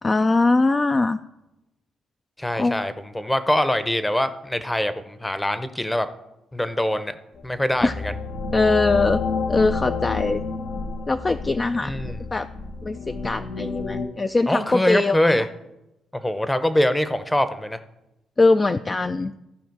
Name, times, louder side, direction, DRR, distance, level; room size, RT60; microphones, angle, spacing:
voice 1, 0.0-1.2 2.6-2.9 7.8-7.9 8.5-9.2 9.5-10.4 11.1-11.9 12.3-12.5 12.8-15.5 18.4-19.3, left 3 dB, 25° left, 9 dB, 0.3 m, -21 dB
voice 2, 2.4-6.1 6.5-7.2 7.4-8.1 11.8-12.3 14.5-15.5 16.1-17.8, left 1 dB, 10° left, 12 dB, 0.7 m, -23 dB
sound 1, 7.4-14.1, left 4 dB, 75° left, 1.0 m, -29 dB
14.5 x 4.8 x 4.7 m, 0.94 s
cardioid pair, 90°, 0 cm